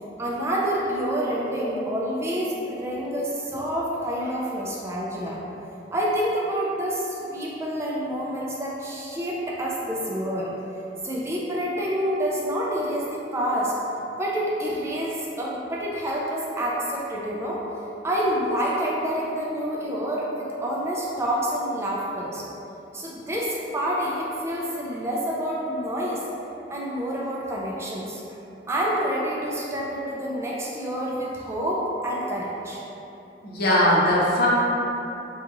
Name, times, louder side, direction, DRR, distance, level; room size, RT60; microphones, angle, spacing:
voice 1, 0.2-5.4 5.9-10.5 11.0-13.7 14.2-17.6 18.0-22.4 22.9-26.2 26.7-28.2 28.7-32.8, equal, 15° right, -5 dB, 0.3 m, -28 dB
voice 2, 33.4-34.5, left 1 dB, 60° left, -6 dB, 0.7 m, -20 dB
2.9 x 2.3 x 3.8 m, 2.9 s
head